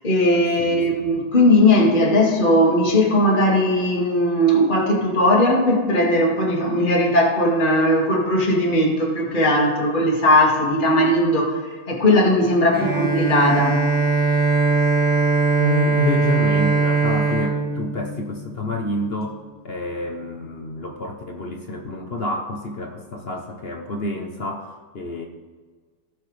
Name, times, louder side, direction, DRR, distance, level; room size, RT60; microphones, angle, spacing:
voice 1, 0.0-11.6 11.9-13.8, left 1 dB, 30° left, -2 dB, 2.0 m, -18 dB
Bowed string instrument, 12.7-18.7, right 4 dB, 5° right, 1.6 m, -20 dB
voice 2, 15.6-25.3, left 2 dB, 45° left, 3 dB, 0.8 m, -28 dB
18.0 x 6.8 x 3.3 m, 1.5 s
omnidirectional pair, 1.9 m